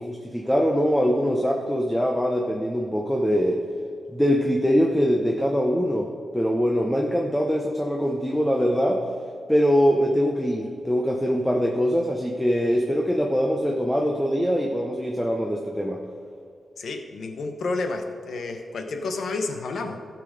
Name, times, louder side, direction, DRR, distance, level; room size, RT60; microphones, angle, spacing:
voice 1, 0.0-3.6 4.1-6.1 6.3-9.0 9.5-16.0, equal, 5° left, 1 dB, 0.8 m, -23 dB
voice 2, 16.8-20.0, left 3 dB, 75° left, 5 dB, 1.1 m, -30 dB
16.0 x 6.0 x 5.0 m, 2.4 s
wide cardioid pair, 145°, 0 cm